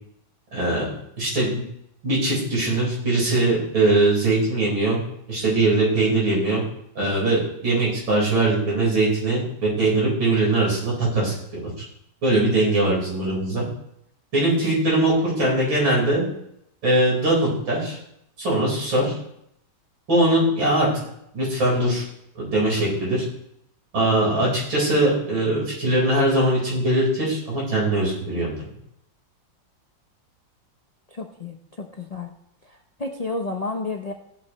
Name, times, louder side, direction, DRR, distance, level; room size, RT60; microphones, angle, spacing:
voice 1, 0.5-0.9 1.2-1.5 2.0-5.0 5.3-6.6 7.0-11.7 12.2-13.6 14.3-16.3 16.8-18.0 18.4-19.1 20.1-20.9 21.3-22.0 22.4-23.2 23.9-28.5, right 2 dB, 90° right, -5 dB, 5.3 m, -21 dB
voice 2, 31.1-32.3 32.7-34.1, left 3 dB, 70° left, 2 dB, 0.3 m, -31 dB
16.5 x 8.7 x 3.1 m, 0.77 s
omnidirectional pair, 2.0 m